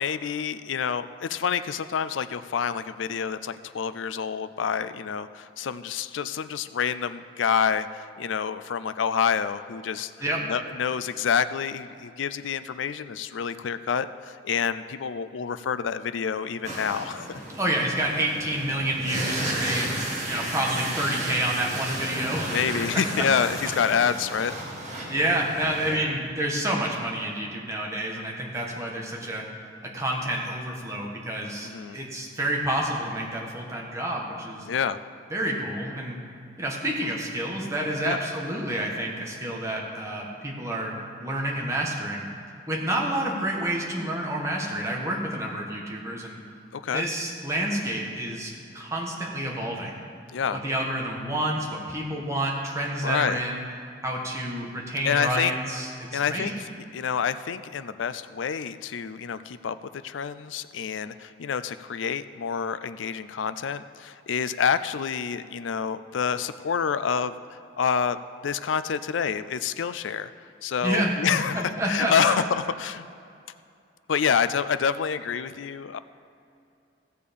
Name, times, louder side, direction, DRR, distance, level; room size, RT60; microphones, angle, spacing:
voice 1, 0.0-10.1 10.5-17.3 22.5-24.5 31.6-32.0 34.7-35.0 38.1-38.2 46.7-47.0 50.3-50.6 53.0-53.4 55.0-55.5 56.1-56.5 56.9-59.8 60.0-67.3 67.8-68.2 68.4-70.3 70.6-73.1 74.1-76.0, left 7 dB, 90° left, 13 dB, 0.4 m, -27 dB
sound 1, 16.6-26.0, right 1 dB, 40° right, 2.0 m, -33 dB
voice 2, 17.6-19.9 20.3-22.6 23.2-23.3 25.1-29.4 29.8-34.7 35.3-36.2 36.6-42.3 42.7-46.4 46.9-50.0 50.5-53.6 54.0-56.5 70.8-71.4 71.8-72.3, right 1 dB, 15° right, -2 dB, 1.4 m, -29 dB
15.5 x 6.7 x 5.3 m, 2.6 s
head